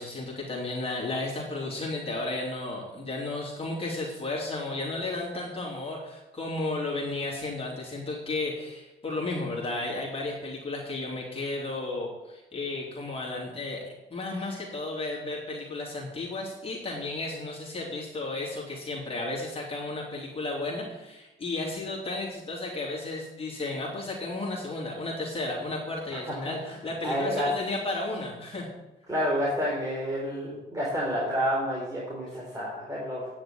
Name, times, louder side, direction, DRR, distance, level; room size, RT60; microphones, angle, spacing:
voice 1, 0.0-13.8 14.1-28.7, left 2 dB, 30° left, -3 dB, 3.1 m, -33 dB
voice 2, 26.3-26.8 27.0-27.5 29.1-33.3, equal, 15° right, -6 dB, 4.2 m, -29 dB
9.6 x 6.5 x 8.8 m, 1.0 s
cardioid pair, 90°, 20 cm